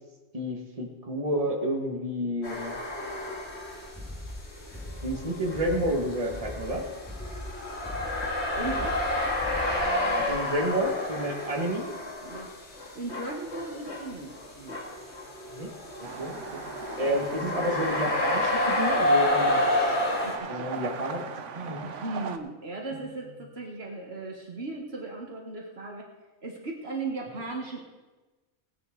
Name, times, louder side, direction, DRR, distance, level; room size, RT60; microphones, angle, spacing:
voice 1, 0.3-2.7 5.0-6.9 10.2-11.9 15.5-15.7 16.2-16.4 17.0-19.9 20.5-21.3 21.6-21.8, equal, 30° right, 1 dB, 1.8 m, -30 dB
sound 1, 2.4-4.0 4.3-20.4, left 1 dB, 65° left, 2.4 m, -30 dB
sound 2, 3.9-10.0, left 1 dB, ahead, 1.5 m, -40 dB
voice 2, 8.6-9.0 10.0-10.4 12.2-12.5 12.9-14.8 20.2-20.7 21.8-26.0 26.4-27.8, right 3 dB, 60° right, 0 dB, 1.6 m, -37 dB
sound 3, 16.0-22.4, right 6 dB, 90° right, 1.1 m, -39 dB
18.0 x 9.7 x 3.8 m, 1.2 s
omnidirectional pair, 1.2 m